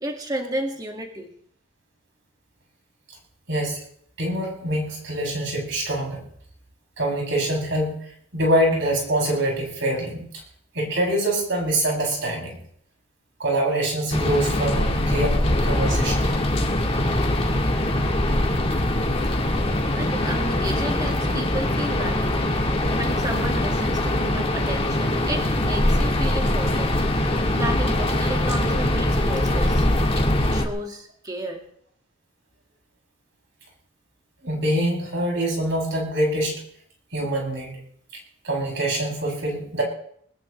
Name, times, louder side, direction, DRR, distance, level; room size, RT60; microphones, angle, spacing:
voice 1, 0.0-1.3 19.5-22.4 22.6-26.9 27.5-29.9 30.2-31.6, right 1 dB, 20° right, 2 dB, 1.9 m, -32 dB
voice 2, 3.5-3.8 4.2-6.2 7.0-8.0 8.3-10.2 10.7-12.6 13.4-16.3 34.4-36.6 37.1-37.8 38.4-39.8, right 1 dB, 60° right, -1 dB, 7.2 m, -24 dB
sound 1, 14.1-30.7, left 1 dB, 30° left, 1.7 m, -22 dB
21.5 x 20.0 x 3.3 m, 0.65 s
head